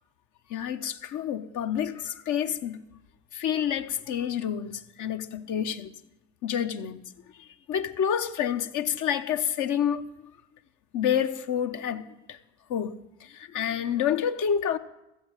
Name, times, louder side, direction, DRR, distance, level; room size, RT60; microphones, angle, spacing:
voice 1, 0.5-2.8 3.3-5.9 6.4-7.0 7.7-10.1 10.9-12.4 12.7-13.0 13.3-14.8, left 9 dB, 80° left, 0.8 m, -28 dB
15.5 x 7.2 x 7.6 m
cardioid pair, 90°, 30 cm